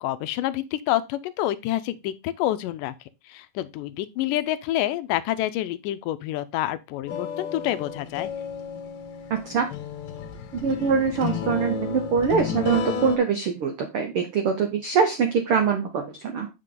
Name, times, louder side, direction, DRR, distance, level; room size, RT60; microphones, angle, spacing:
voice 1, 0.0-2.9 3.3-8.3, left 14 dB, 80° left, 2.1 m, -28 dB
sound 1, 7.1-13.2, left 6 dB, 60° left, 2.6 m, -32 dB
voice 2, 9.3-9.7 10.5-16.5, right 6 dB, 75° right, 1.2 m, -23 dB
8.1 x 5.7 x 3.7 m
omnidirectional pair, 3.9 m